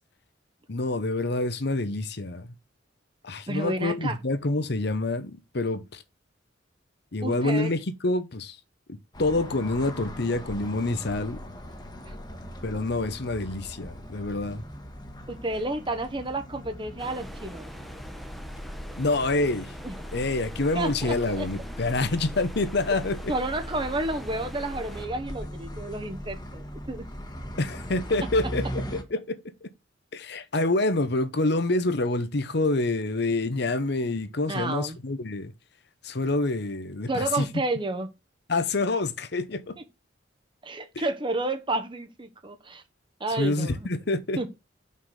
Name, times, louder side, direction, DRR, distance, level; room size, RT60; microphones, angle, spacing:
voice 1, 0.7-2.5 3.2-6.0 7.1-8.6 8.9-11.4 12.6-14.6 19.0-19.7 20.1-23.3 27.6-29.7 30.1-35.5 36.0-37.5 38.5-39.8 40.9-41.0 43.4-44.5, left 2 dB, 60° left, 1.0 m, -27 dB
voice 2, 3.5-4.2 7.2-7.7 12.1-12.2 15.3-17.7 19.8-19.9 20.7-21.5 23.3-27.0 34.5-35.0 37.1-38.1 40.6-42.8 43.2-43.9 44.4-44.5, right 2 dB, 25° right, 1.0 m, -31 dB
sound 1, 9.1-29.0, equal, 20° left, 1.3 m, -39 dB
sound 2, 17.0-25.1, equal, ahead, 1.0 m, -45 dB
5.8 x 5.6 x 6.4 m
head